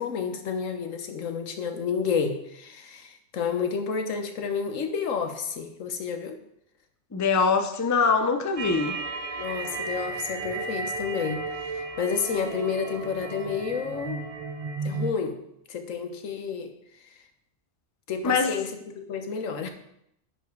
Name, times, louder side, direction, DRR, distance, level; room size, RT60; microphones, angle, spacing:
voice 1, 0.0-6.4 9.4-14.3 14.8-15.4 15.7-16.7 18.1-19.7, left 6 dB, 75° left, 7 dB, 1.3 m, -30 dB
voice 2, 7.1-9.0 18.2-18.6, left 5 dB, 20° left, 6 dB, 0.5 m, -23 dB
sound 1, 8.6-15.1, right 3 dB, 40° right, 0.5 m, -34 dB
10.0 x 5.2 x 4.7 m, 0.77 s
omnidirectional pair, 1.4 m